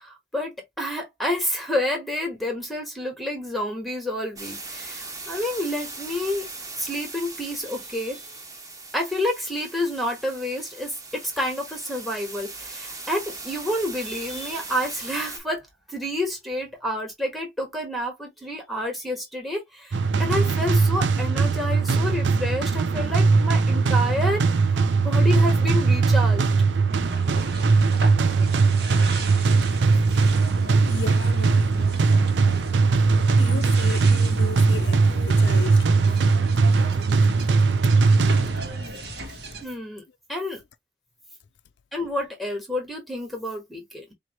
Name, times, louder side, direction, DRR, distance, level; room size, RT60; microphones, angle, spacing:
voice 1, 0.0-6.5 6.8-8.3 8.9-15.6 15.9-26.5 39.6-40.0 40.3-40.6 41.9-44.0, left 1 dB, ahead, 1.2 m, -29 dB
sound 1, 4.4-15.4, right 3 dB, 20° right, 1.1 m, -39 dB
sound 2, 19.9-38.9, right 4 dB, 90° right, 0.5 m, -20 dB
sound 3, 26.9-39.6, right 2 dB, 65° right, 1.1 m, -37 dB
voice 2, 30.9-31.9 33.4-36.3 37.8-37.9, left 6 dB, 80° left, 0.4 m, -36 dB
4.5 x 2.7 x 2.9 m
head